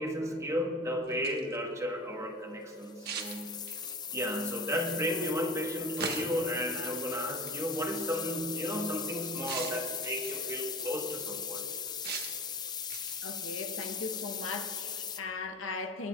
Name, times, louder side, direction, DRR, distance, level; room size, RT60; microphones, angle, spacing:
voice 1, 0.0-3.5 4.1-11.6, equal, 15° right, 1.2 m, -33 dB
sound 1, 1.0-1.6 3.0-4.0 6.0-6.5 7.5-7.7 9.5-10.5 12.0-12.5 12.9-13.4, right 5 dB, 50° right, 1.2 m, -40 dB
sound 2, 2.8-15.2, left 8 dB, 20° left, 0.4 m, -39 dB
voice 2, 13.2-16.1, left 3 dB, 80° left, 0.9 m, -38 dB
24.0 x 10.5 x 2.3 m
head